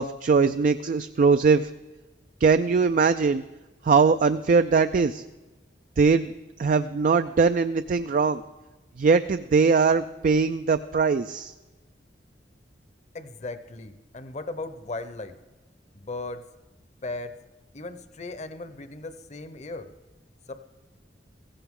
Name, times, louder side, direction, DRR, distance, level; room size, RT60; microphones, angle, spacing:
voice 1, 0.0-1.7 2.4-3.4 3.8-5.2 6.0-6.3 6.6-8.4 9.0-11.5, right 5 dB, 50° right, 10 dB, 0.4 m, -21 dB
voice 2, 13.1-15.3 15.9-16.4 17.0-17.3 17.7-19.9 20.5-20.6, left 2 dB, 40° left, 10 dB, 0.8 m, -37 dB
16.0 x 15.5 x 3.7 m, 1.2 s
head